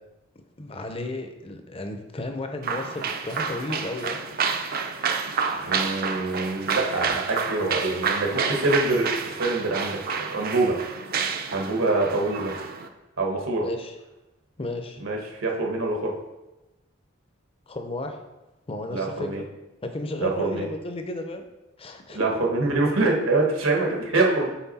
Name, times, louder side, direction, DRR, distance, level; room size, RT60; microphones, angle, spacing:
voice 1, 0.6-4.2 13.6-13.9 14.6-15.0 17.7-18.2 18.7-19.5 19.8-21.4 21.8-22.3, left 2 dB, 30° left, 6 dB, 0.6 m, -33 dB
sound 1, 2.6-12.9, right 5 dB, 45° right, 0.5 m, -29 dB
voice 2, 5.6-9.1 9.4-10.0 10.3-10.7 11.5-12.5 13.2-13.7 15.0-16.1 18.9-19.4 20.2-20.7 22.1-24.5, right 2 dB, 85° right, 0 dB, 1.3 m, -25 dB
5.8 x 4.3 x 4.1 m, 1.0 s
head